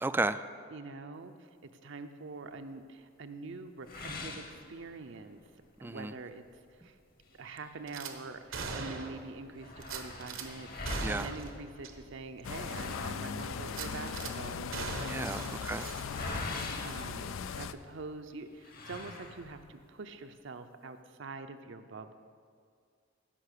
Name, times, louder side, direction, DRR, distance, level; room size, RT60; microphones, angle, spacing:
voice 1, 0.0-0.4 5.8-6.1 11.0-11.3 14.9-16.0 16.2-16.5, right 2 dB, 10° right, 12 dB, 0.3 m, -34 dB
voice 2, 0.7-4.4 4.7-5.4 5.8-6.4 6.8-7.0 7.3-15.2 15.5-15.7 16.8-22.1, right 3 dB, 65° right, 8 dB, 0.7 m, -45 dB
sound 1, 3.9-5.3 5.8-5.9 6.3-6.4 7.2-8.5 8.9-9.0 9.2-17.9 18.6-19.8, left 2 dB, 50° left, 1.3 m, -43 dB
Gunshot gunfire / Glass, 7.9-8.1 8.5-9.3 9.8-10.5 10.9-11.5 11.8-11.9 12.4-12.5 13.7-14.3 14.7-16.5 16.8-17.0, right 4 dB, 80° right, 1.1 m, -40 dB
sound 2, 12.4-17.7, left 6 dB, 85° left, 0.5 m, -38 dB
16.0 x 5.6 x 6.7 m, 2.2 s
head